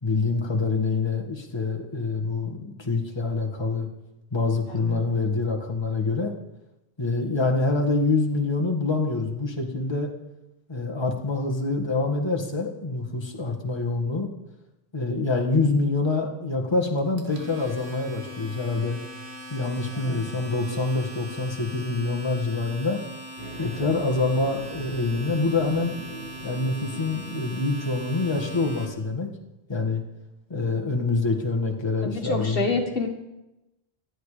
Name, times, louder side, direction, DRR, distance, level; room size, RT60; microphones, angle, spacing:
voice 1, 0.0-3.9 4.3-6.3 7.0-10.1 10.7-14.3 14.9-19.0 19.5-23.0 23.6-25.9 26.4-29.3 29.7-30.0 30.5-32.7, left 3 dB, 25° left, 0 dB, 1.8 m, -26 dB
voice 2, 4.7-5.0 19.9-20.2 32.0-33.1, left 3 dB, 65° left, 3 dB, 1.9 m, -28 dB
Domestic sounds home sounds, 17.0-28.8, equal, 90° right, 2.4 m, -41 dB
sound 1, 23.4-28.9, equal, 65° right, 4.2 m, -42 dB
26.0 x 9.6 x 5.0 m, 0.96 s
omnidirectional pair, 1.1 m